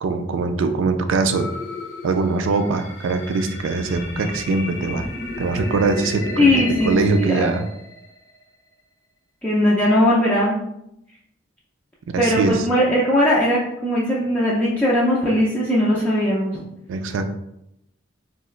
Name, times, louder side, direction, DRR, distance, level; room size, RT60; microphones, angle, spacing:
voice 1, 0.0-1.5 2.0-5.1 5.4-7.7 12.1-12.6 16.9-17.3, right 3 dB, 80° right, 8 dB, 0.3 m, -22 dB
sound 1, 1.3-8.4, left 2 dB, 60° left, 0.6 m, -33 dB
voice 2, 6.4-7.5 9.4-10.6 12.2-16.6, left 1 dB, 10° left, -7 dB, 0.3 m, -19 dB
3.8 x 2.1 x 2.4 m, 0.81 s
head